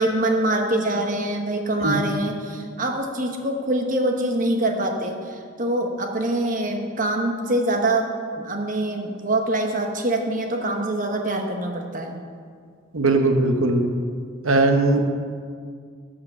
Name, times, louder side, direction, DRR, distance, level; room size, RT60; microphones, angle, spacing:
voice 1, 0.0-8.1 8.4-12.2, right 1 dB, 40° right, 3 dB, 1.1 m, -24 dB
voice 2, 12.9-13.9 14.4-15.0, right 2 dB, 80° right, 5 dB, 1.0 m, -19 dB
12.0 x 5.8 x 6.9 m, 2.1 s
head